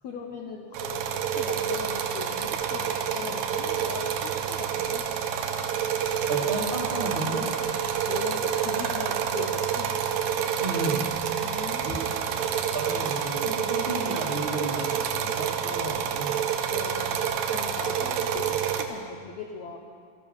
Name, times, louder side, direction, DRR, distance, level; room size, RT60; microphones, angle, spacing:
voice 1, 0.0-5.0 8.1-9.9 11.4-12.4 16.7-19.8, left 6 dB, 80° left, 1 dB, 1.6 m, -39 dB
sound 1, 0.7-18.8, right 8 dB, 75° right, 2.4 m, -28 dB
voice 2, 6.3-7.5 10.6-11.0 11.8-12.0 12.4-12.5 12.7-16.4 17.8-17.9, right 2 dB, 35° right, -2 dB, 0.8 m, -32 dB
13.5 x 11.0 x 6.4 m, 2.2 s
omnidirectional pair, 4.4 m